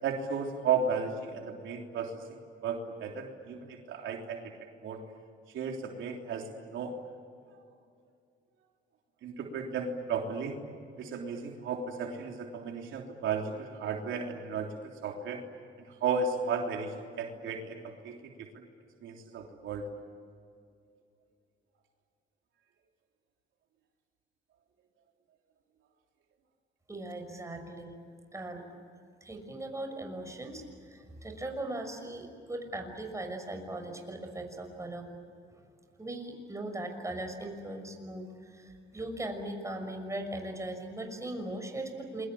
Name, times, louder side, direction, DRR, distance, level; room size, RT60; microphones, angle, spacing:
voice 1, 0.0-2.1 2.6-4.5 4.8-5.0 5.5-6.9 9.2-10.6 11.0-15.4 16.0-18.2 19.0-19.8, right 5 dB, 80° right, 2 dB, 3.4 m, -34 dB
voice 2, 26.9-28.0 28.3-28.7 29.2-35.1 36.0-42.3, right 1 dB, 15° right, 4 dB, 6.1 m, -39 dB
28.5 x 23.0 x 8.8 m, 2.3 s
cardioid pair, 90°, 20 cm